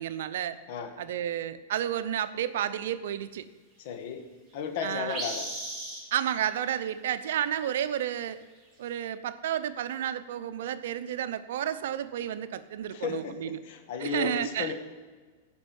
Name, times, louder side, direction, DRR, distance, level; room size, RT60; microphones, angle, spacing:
voice 1, 0.0-0.6 1.0-3.4 4.8-5.2 6.1-8.4 8.8-13.6 14.0-14.7, right 10 dB, 70° right, 12 dB, 0.7 m, -31 dB
voice 2, 3.8-4.2 4.5-5.5 12.9-14.7, left 7 dB, 60° left, 6 dB, 1.8 m, -34 dB
sound 1, 5.1-6.7 8.9-9.0, right 1 dB, 10° right, 4.6 m, -36 dB
16.0 x 5.4 x 7.0 m, 1.4 s
hypercardioid pair, 135°, 0 cm